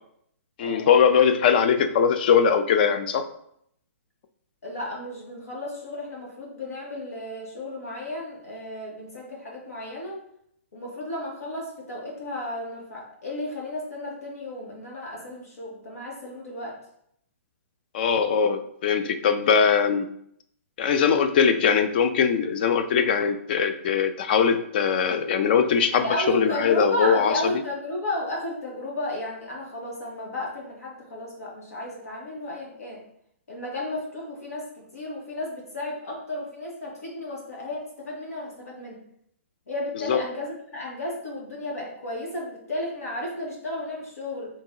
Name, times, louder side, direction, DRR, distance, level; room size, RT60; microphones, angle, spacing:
voice 1, 0.6-3.2 17.9-20.1 20.8-27.5 40.0-40.2, left 7 dB, 40° left, 9 dB, 0.4 m, -21 dB
voice 2, 4.6-10.2 10.7-16.7 26.0-33.0 33.5-39.0 39.7-44.5, left 1 dB, 85° left, -2 dB, 1.7 m, -33 dB
3.9 x 2.7 x 3.8 m, 0.70 s
hypercardioid pair, 160°, 8 cm